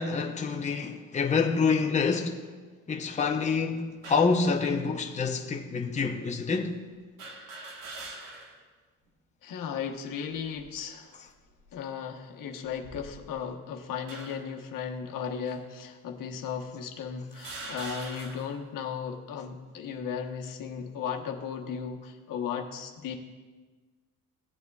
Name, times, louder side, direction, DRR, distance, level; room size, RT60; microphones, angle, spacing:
voice 1, 0.0-2.4 2.9-6.8, left 5 dB, 20° left, 0.8 m, -27 dB
Industrial Metal Runner Drop, 4.0-4.4 5.3-5.4 7.2-8.7 9.1-9.2 10.3-10.8 11.4-11.7 12.7-13.5 14.1-14.6 15.5-15.6 16.5-16.6 17.3-18.6, right 2 dB, 75° right, 1.6 m, -43 dB
voice 2, 9.4-11.1 11.7-23.1, left 7 dB, 70° left, 1.1 m, -36 dB
16.5 x 7.8 x 2.3 m
cardioid pair, 105°, 34 cm